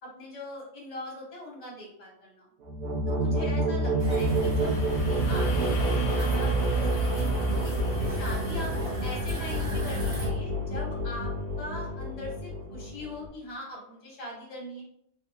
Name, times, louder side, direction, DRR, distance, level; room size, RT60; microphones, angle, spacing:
voice 1, 0.0-2.5 3.1-4.7 5.1-7.6 8.0-11.3 11.6-14.8, left 1 dB, 25° left, -4 dB, 0.8 m, -41 dB
sound 1, 2.6-13.3, right 1 dB, 75° right, 0.8 m, -28 dB
sound 2, 3.8-12.1, left 4 dB, 75° left, 1.3 m, -43 dB
sound 3, 4.0-10.3, equal, 40° right, 0.9 m, -34 dB
3.4 x 2.5 x 2.8 m, 0.72 s
omnidirectional pair, 2.2 m